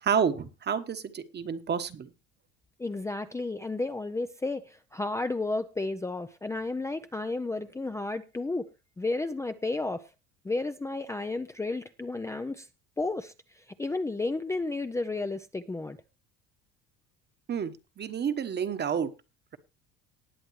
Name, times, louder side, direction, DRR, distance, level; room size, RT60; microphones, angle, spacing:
voice 1, 0.0-2.1 17.5-19.1, right 7 dB, 35° right, 1.3 m, -29 dB
voice 2, 2.8-8.7 9.0-10.1 10.4-12.7 13.0-16.0, left 2 dB, 10° left, 0.5 m, -32 dB
19.0 x 7.6 x 3.2 m
supercardioid pair, 105°, 30 cm